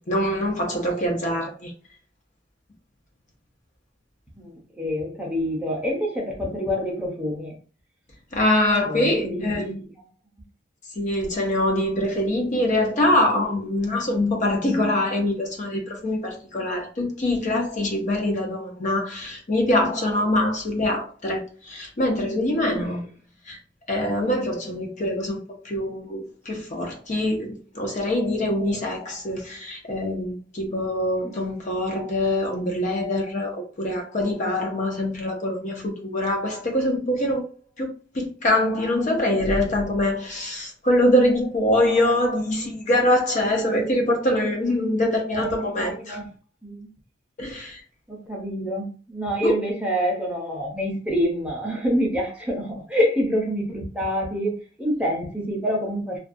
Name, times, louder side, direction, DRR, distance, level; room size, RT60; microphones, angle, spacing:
voice 1, 0.1-1.7 8.3-9.6 10.9-23.0 23.5-23.6 23.9-37.5 37.8-46.2 47.4-47.8 49.4-49.5, left 1 dB, 45° left, 0.6 m, -24 dB
voice 2, 4.4-7.6 8.8-10.0 22.7-23.0 31.2-31.4 44.8-44.9 45.3-45.6 46.0-46.3 46.6-46.9 48.1-56.2, equal, 5° right, 0.6 m, -27 dB
2.4 x 2.2 x 2.5 m
head